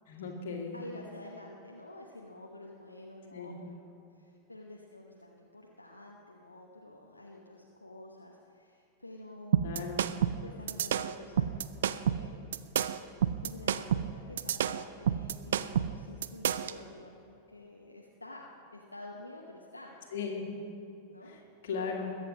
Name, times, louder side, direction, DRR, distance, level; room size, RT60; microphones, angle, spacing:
voice 1, 0.1-0.8 3.3-3.5 9.6-10.1 20.1-20.5 21.3-21.4 21.6-22.1, left 5 dB, 55° left, 0 dB, 2.3 m, -37 dB
voice 2, 0.7-3.8 4.1-9.9 10.4-12.6 13.4-20.0 21.1-21.3, left 1 dB, 80° left, -1 dB, 1.0 m, -49 dB
sound 1, 9.5-16.8, right 9 dB, 60° right, 0.4 m, -29 dB
21.0 x 8.0 x 5.2 m, 2.7 s
figure-of-eight pair, 90°, 0 cm